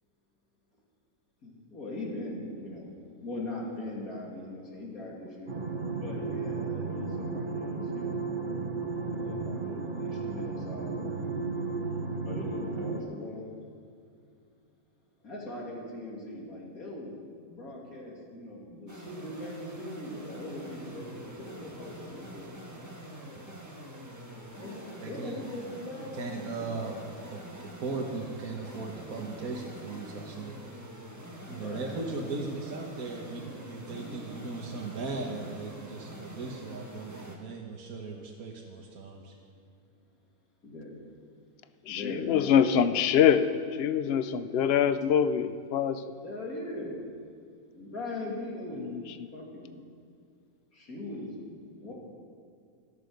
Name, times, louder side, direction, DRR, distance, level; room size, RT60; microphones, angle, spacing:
voice 1, 1.4-2.9 3.2-5.5 6.0-11.0 12.2-13.5 15.2-17.2 17.5-22.5 24.6-26.7 31.5-31.9 33.9-34.3 40.6-41.0 41.8-43.1 46.2-47.0 47.7-49.8 50.7-51.9, left 1 dB, 75° left, -3 dB, 3.4 m, -40 dB
sound 1, 5.5-13.0, right 4 dB, 35° right, 1.2 m, -34 dB
sound 2, 18.9-37.4, right 1 dB, 10° right, 1.5 m, -45 dB
voice 2, 25.0-25.4 26.1-30.6 31.5-39.3, right 3 dB, 80° right, 0 dB, 1.7 m, -38 dB
voice 3, 41.9-43.5 43.8-45.4 45.7-45.9 48.8-49.0, left 8 dB, 55° left, 12 dB, 0.8 m, -24 dB
13.5 x 11.5 x 6.5 m, 2.2 s
omnidirectional pair, 1.5 m